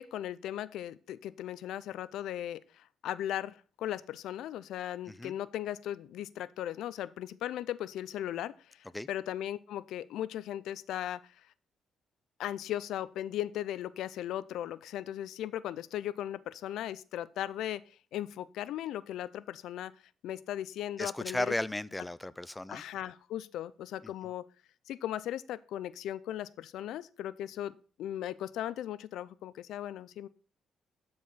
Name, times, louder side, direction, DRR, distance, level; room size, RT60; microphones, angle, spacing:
voice 1, 0.0-11.3 12.4-17.8 18.1-19.9 20.2-21.5 22.7-24.4 24.9-30.3, left 12 dB, 80° left, 17 dB, 0.5 m, -37 dB
voice 2, 21.0-22.8, left 1 dB, 10° left, 17 dB, 0.5 m, -35 dB
13.0 x 4.8 x 4.1 m, 0.39 s
cardioid pair, 90°, 0 cm